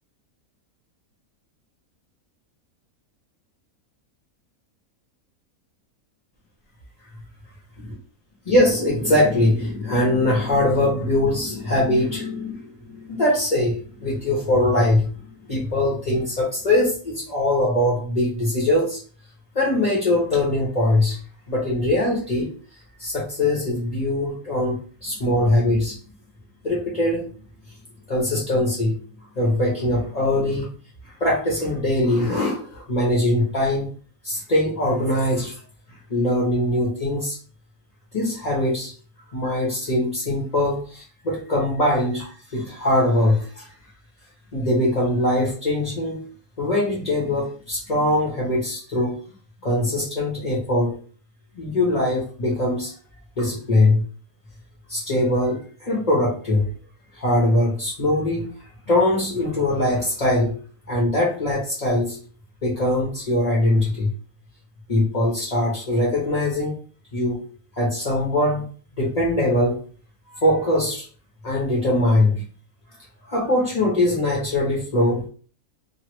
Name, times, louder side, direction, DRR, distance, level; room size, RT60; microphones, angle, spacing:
voice 1, 8.4-19.0 19.5-21.2 21.5-22.5 23.0-25.9 26.6-27.2 28.1-28.9 29.3-30.7 31.0-33.9 34.2-35.5 36.1-37.4 38.1-38.9 39.3-43.7 44.5-46.2 46.6-49.2 49.6-51.0 51.5-52.9 53.4-54.0 54.9-56.7 57.1-58.5 58.9-60.6 60.9-62.2 62.6-64.1 64.9-66.8 67.1-67.4 67.8-68.7 69.0-69.8 70.3-71.0 71.4-72.4 73.2-75.3, left 1 dB, 30° left, -4 dB, 0.9 m, -22 dB
3.1 x 2.3 x 3.1 m, 0.40 s
omnidirectional pair, 1.5 m